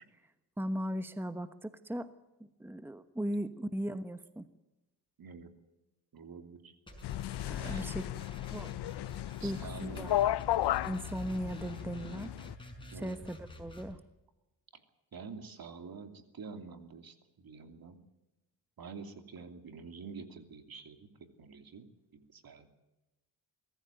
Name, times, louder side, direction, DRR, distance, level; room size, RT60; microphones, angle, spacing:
voice 1, 0.6-2.1 2.4-4.5 7.4-8.0 8.5-8.7 9.4-10.1 10.6-12.3 12.9-14.0, equal, 5° right, 11 dB, 1.2 m, -38 dB
voice 2, 5.2-5.5 6.1-6.7 7.6-8.0 9.4-10.2 12.9-13.2 15.1-18.0 18.8-21.1 21.4-21.9 22.1-22.7, right 5 dB, 60° right, 7 dB, 2.8 m, -47 dB
sound 1, 6.9-13.9, equal, 10° left, 5.6 m, -49 dB
sound 2, 7.0-12.5, left 13 dB, 75° left, 0.6 m, -34 dB
22.5 x 14.5 x 9.2 m, 0.98 s
cardioid pair, 70°, 40 cm